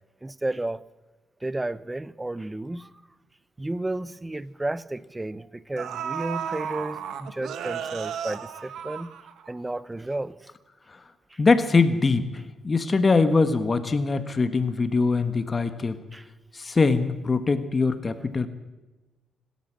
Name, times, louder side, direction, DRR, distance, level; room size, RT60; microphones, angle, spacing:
voice 1, 0.2-0.8 1.4-2.9 3.6-9.1 9.5-10.5 11.3-11.4 16.1-16.3, right 2 dB, 15° right, 0.8 m, -32 dB
sound 1, 3.6-3.7 4.1-4.3 5.3-5.4 5.8-9.7 10.0-10.1, right 8 dB, 75° right, 1.7 m, -34 dB
voice 2, 11.4-16.0 16.5-18.5, left 4 dB, 30° left, 1.5 m, -22 dB
26.0 x 13.0 x 7.6 m
cardioid pair, 90°, 0 cm